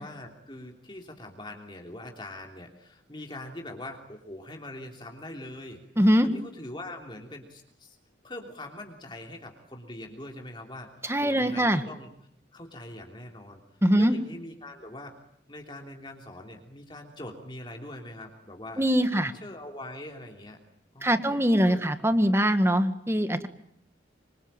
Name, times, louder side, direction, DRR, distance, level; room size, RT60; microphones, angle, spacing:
voice 1, 0.0-5.8 6.2-8.0 8.2-10.9 11.2-12.1 12.5-13.6 13.9-15.1 15.5-18.8 19.1-20.6 20.9-21.9, left 1 dB, 25° left, 2 dB, 3.3 m, -42 dB
voice 2, 6.0-6.3 11.0-11.8 13.8-14.1 18.8-19.3 21.0-23.5, equal, 15° right, 9 dB, 1.7 m, -22 dB
26.0 x 25.5 x 8.9 m, 0.69 s
head